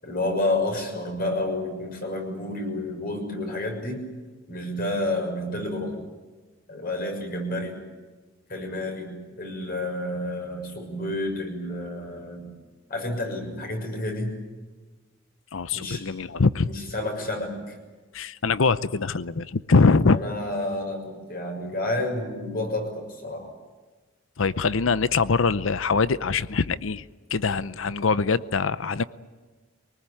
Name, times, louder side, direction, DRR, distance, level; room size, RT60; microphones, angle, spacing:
voice 1, 0.0-4.0 4.5-6.0 6.7-7.8 8.5-12.5 12.9-14.3 15.7-16.0 16.6-17.8 20.1-23.5, left 1 dB, 50° left, 3 dB, 6.5 m, -30 dB
voice 2, 15.5-16.7 18.1-20.2 24.4-27.0 27.3-29.0, left 4 dB, 85° left, 16 dB, 0.7 m, -23 dB
24.5 x 19.5 x 9.9 m, 1.3 s
head